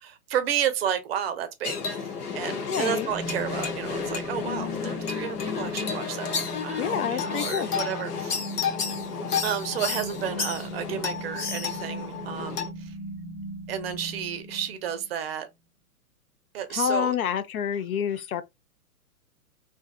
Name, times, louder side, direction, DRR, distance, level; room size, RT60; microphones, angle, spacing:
voice 1, 0.0-8.4 9.4-13.0 13.7-15.5 16.5-17.2, right 9 dB, 40° right, 0.5 m, -32 dB
sound 1, 1.6-12.7, left 6 dB, 85° left, 1.0 m, -32 dB
voice 2, 2.7-3.1 6.8-7.7 16.7-18.4, left 8 dB, 70° left, 0.6 m, -28 dB
sound 2, 3.1-15.1, equal, 15° left, 0.7 m, -39 dB
2.7 x 2.3 x 2.2 m
hypercardioid pair, 125°, 45 cm